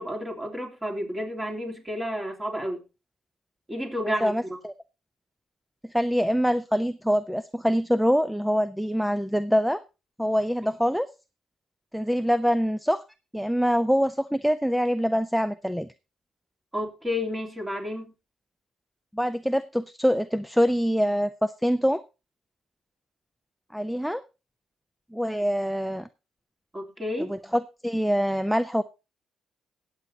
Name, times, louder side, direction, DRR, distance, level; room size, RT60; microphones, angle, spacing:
voice 1, 0.0-2.8 3.7-4.6 16.7-18.1 26.7-27.3, left 1 dB, 15° right, 0 dB, 3.3 m, -31 dB
voice 2, 4.2-4.7 5.8-9.8 10.2-11.1 11.9-13.0 13.3-15.9 19.1-22.0 23.7-24.2 25.1-26.1 27.3-28.8, equal, ahead, 13 dB, 0.5 m, -24 dB
20.0 x 8.4 x 2.8 m, 0.29 s
cardioid pair, 90°, 0 cm